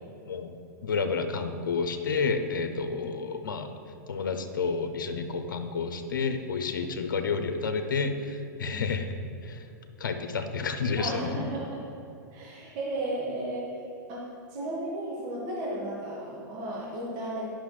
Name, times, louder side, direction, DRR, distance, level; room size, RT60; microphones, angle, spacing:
voice 1, 0.3-3.7 4.1-9.2 9.4-9.7 10.0-11.4, left 4 dB, 90° left, 7 dB, 0.8 m, -30 dB
voice 2, 11.0-11.6 12.3-13.7 14.1-17.5, right 1 dB, 45° right, -4 dB, 1.7 m, -34 dB
11.5 x 6.1 x 3.2 m, 2.6 s
hypercardioid pair, 125°, 11 cm